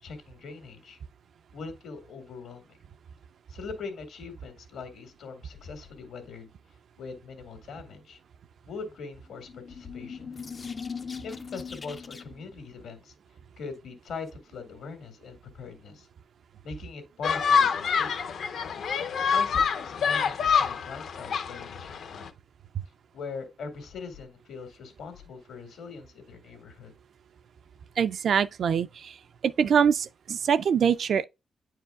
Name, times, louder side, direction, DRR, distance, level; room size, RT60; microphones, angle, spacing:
voice 1, 0.0-1.0 1.5-2.8 3.5-6.5 7.0-8.2 8.7-10.3 11.2-13.1 13.6-16.1 16.6-18.3 19.3-22.3 23.1-27.0, left 5 dB, 75° left, 2.0 m, -41 dB
sound 1, 9.3-12.5, left 5 dB, 25° left, 0.3 m, -39 dB
sound 2, 17.2-22.3, left 6 dB, 60° left, 0.6 m, -26 dB
voice 2, 28.0-29.2 29.4-31.3, right 7 dB, 55° right, 0.3 m, -24 dB
9.5 x 4.6 x 2.3 m
wide cardioid pair, 175°, 0 cm